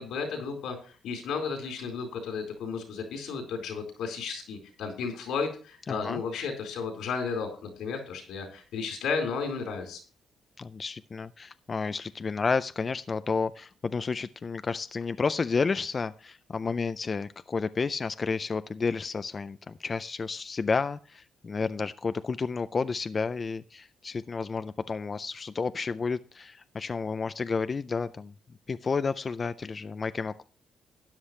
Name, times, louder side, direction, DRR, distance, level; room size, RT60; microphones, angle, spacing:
voice 1, 0.0-10.0, left 5 dB, 85° left, 3 dB, 4.1 m, -33 dB
voice 2, 5.9-6.2 10.6-28.3 28.7-30.4, left 4 dB, 30° left, 12 dB, 0.4 m, -31 dB
13.0 x 9.9 x 3.2 m, 0.38 s
cardioid pair, 130°, 0 cm